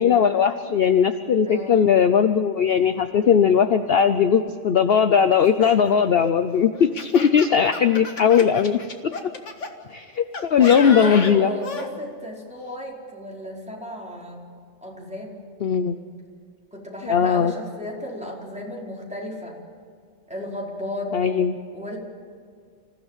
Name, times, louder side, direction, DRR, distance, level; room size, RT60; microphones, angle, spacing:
voice 1, 0.0-8.8 9.9-11.5 15.6-16.0 17.1-17.5 21.1-21.6, left 7 dB, 55° left, 9 dB, 0.9 m, -19 dB
voice 2, 1.4-1.8 10.6-14.4 14.8-15.4 16.7-19.6 20.3-21.2 21.7-22.0, left 1 dB, 5° right, -3 dB, 4.8 m, -34 dB
Laughter, 5.3-9.7 10.3-11.9, left 3 dB, 75° left, 2.1 m, -33 dB
27.0 x 16.0 x 7.4 m, 2.1 s
omnidirectional pair, 1.3 m